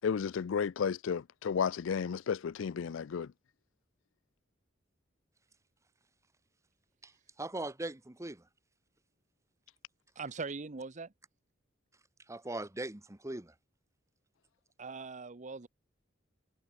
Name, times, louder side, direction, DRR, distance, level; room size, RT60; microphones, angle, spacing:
voice 1, 0.0-3.3, left 6 dB, 75° left, 0.4 m, -33 dB
voice 2, 7.4-8.4 12.3-13.5, right 2 dB, 15° right, 1.1 m, -40 dB
voice 3, 10.2-11.1 14.8-15.7, right 4 dB, 40° right, 0.9 m, -41 dB
head